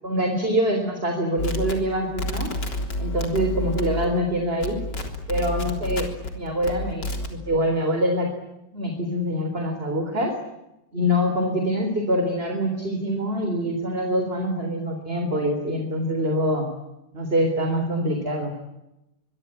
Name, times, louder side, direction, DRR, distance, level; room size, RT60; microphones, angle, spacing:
voice 1, 0.0-2.5 3.0-4.8 5.3-6.1 6.3-8.3 8.7-10.3 10.9-16.7 17.1-18.5, equal, 35° right, 5 dB, 4.0 m, -25 dB
sound 1, 1.4-4.3 4.6-6.3 6.6-7.3, left 1 dB, 85° left, 4.3 m, -29 dB
24.5 x 23.5 x 9.8 m, 0.90 s
omnidirectional pair, 1.8 m